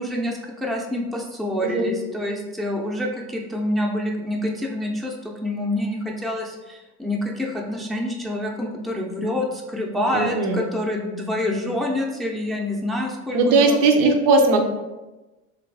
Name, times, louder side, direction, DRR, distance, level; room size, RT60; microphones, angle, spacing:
voice 1, 0.0-13.8, left 1 dB, ahead, -1 dB, 0.5 m, -27 dB
voice 2, 1.6-1.9 10.1-10.6 13.3-14.6, right 3 dB, 70° right, 4 dB, 0.6 m, -18 dB
3.4 x 2.5 x 3.2 m, 1.1 s
supercardioid pair, 90°, 33 cm